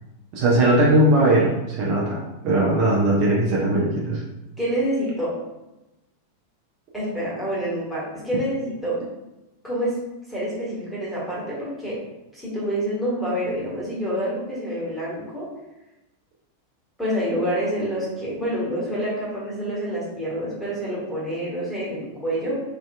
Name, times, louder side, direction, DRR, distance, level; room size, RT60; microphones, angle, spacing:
voice 1, 0.3-4.2, right 1 dB, 45° right, -5 dB, 0.7 m, -19 dB
voice 2, 4.6-5.3 6.9-9.0 9.6-10.0 10.3-12.0 12.3-15.5 17.0-22.6, equal, 5° left, -8 dB, 1.3 m, -27 dB
3.3 x 2.8 x 2.3 m, 0.99 s
figure-of-eight pair, 90°, 0 cm